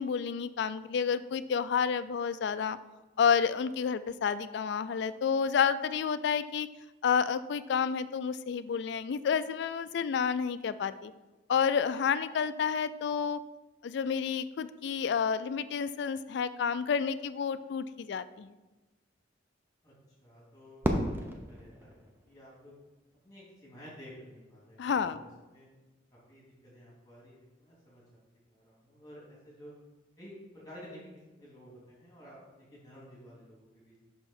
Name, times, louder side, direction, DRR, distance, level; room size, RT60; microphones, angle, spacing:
voice 1, 0.0-2.8 3.2-6.7 7.0-11.1 11.5-13.4 13.8-18.6 24.8-25.2, left 6 dB, 60° left, 13 dB, 0.3 m, -30 dB
voice 2, 20.2-22.7 23.2-25.7 26.1-28.0 28.5-29.7 30.2-34.0, equal, 20° left, -6 dB, 2.4 m, -52 dB
Fireworks, 20.8-23.0, equal, 10° right, 0.6 m, -34 dB
5.9 x 5.7 x 4.2 m, 1.1 s
head